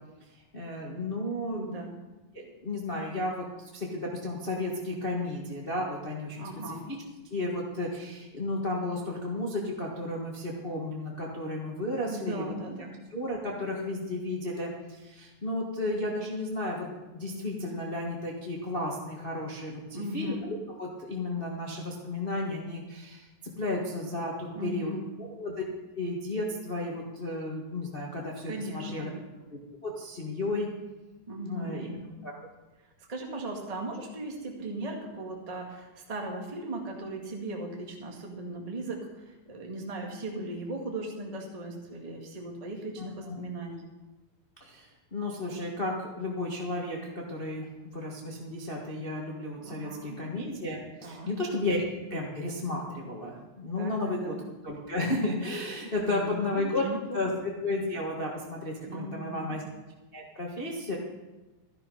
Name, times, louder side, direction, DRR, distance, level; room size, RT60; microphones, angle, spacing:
voice 1, 0.5-1.7 2.3-7.0 7.3-12.4 13.1-23.3 23.6-24.9 25.4-25.5 25.9-29.1 29.5-30.7 31.5-32.3 43.0-43.4 44.6-47.7 47.9-51.8 52.1-54.3 54.6-56.8 57.1-59.6 60.1-60.9, left 2 dB, 35° left, -2 dB, 0.8 m, -33 dB
voice 2, 1.5-1.9 6.3-6.9 12.1-13.0 19.9-20.5 24.5-25.1 28.5-29.1 31.3-32.0 33.1-43.8 49.6-50.2 51.0-51.3 53.8-54.4 56.0-57.2 58.9-59.6, right 2 dB, 20° right, 1 dB, 1.2 m, -38 dB
13.5 x 11.5 x 5.5 m, 1.1 s
omnidirectional pair, 4.0 m